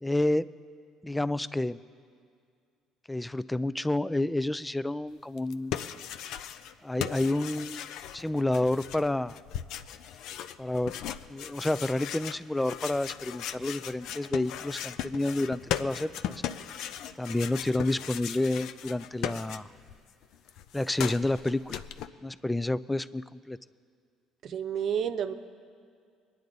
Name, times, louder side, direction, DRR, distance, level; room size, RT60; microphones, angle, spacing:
voice 1, 0.0-0.5 1.0-1.8 3.1-5.7 6.8-7.9 8.1-9.4 10.6-10.9 11.3-16.1 17.2-19.7 20.7-21.8 22.2-23.6, left 1 dB, 10° left, 17 dB, 0.4 m, -29 dB
sound 1, 5.4-6.7 7.0-20.0 20.2-22.1, left 10 dB, 70° left, 0.5 m, -38 dB
voice 2, 24.4-25.3, right 8 dB, 60° right, 7 dB, 0.8 m, -30 dB
23.0 x 9.9 x 4.0 m, 2.3 s
hypercardioid pair, 65°, 0 cm